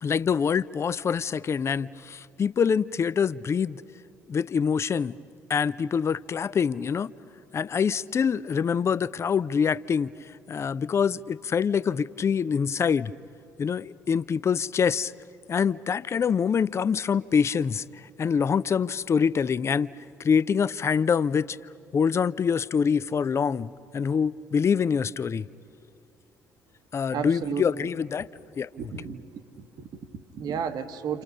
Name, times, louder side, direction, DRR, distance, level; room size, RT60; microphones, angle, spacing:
voice 1, 0.0-3.8 4.3-5.2 5.5-7.1 7.5-10.1 10.5-13.1 13.6-15.1 15.5-17.8 18.2-19.9 20.2-21.6 21.9-25.5 26.9-28.3 28.6-28.7, left 6 dB, 35° left, 0.5 m, -25 dB
voice 2, 27.1-27.9 28.8-29.2 29.6-31.2, right 7 dB, 55° right, 1.2 m, -33 dB
28.5 x 27.5 x 5.5 m
figure-of-eight pair, 50°, 8 cm